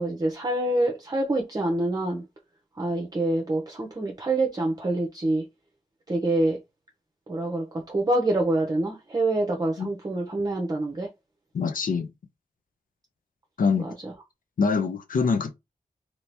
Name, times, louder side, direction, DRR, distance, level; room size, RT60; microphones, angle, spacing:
voice 1, 0.0-2.2 2.8-5.4 6.1-6.6 7.3-11.1 13.8-14.1, right 2 dB, 30° right, 0.7 m, -26 dB
voice 2, 11.5-12.1 13.6-13.9 14.6-15.5, left 5 dB, 85° left, 0.6 m, -24 dB
2.8 x 2.8 x 3.3 m
wide cardioid pair, 110°, 14 cm